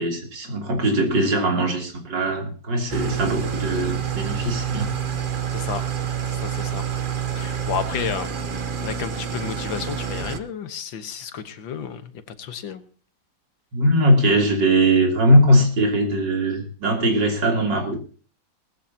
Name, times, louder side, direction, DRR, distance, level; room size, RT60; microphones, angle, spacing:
voice 1, 0.0-4.9 13.7-18.0, right 1 dB, 60° right, 2 dB, 3.6 m, -20 dB
Engine starting / Idling, 2.9-10.4, right 8 dB, 45° right, 0.7 m, -28 dB
voice 2, 6.3-6.8 7.3-8.3 8.8-12.8, left 7 dB, 75° left, 11 dB, 1.9 m, -31 dB
19.5 x 14.5 x 2.8 m, 0.39 s
omnidirectional pair, 2.1 m